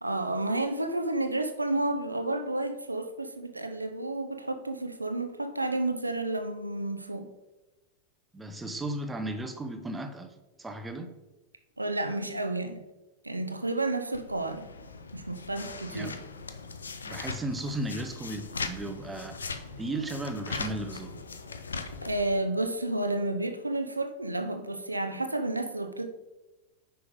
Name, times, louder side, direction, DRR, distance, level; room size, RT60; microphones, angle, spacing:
voice 1, 0.0-7.3 11.8-12.8 13.2-14.7 15.1-16.1 22.0-26.1, right 2 dB, 85° right, 8 dB, 0.7 m, -31 dB
voice 2, 8.3-11.1 15.9-16.1 17.0-21.1, right 1 dB, 10° right, 6 dB, 0.9 m, -35 dB
sound 1, 14.1-22.2, left 4 dB, 75° left, 0.6 m, -39 dB
9.4 x 5.6 x 3.6 m, 1.1 s
figure-of-eight pair, 90°, 0 cm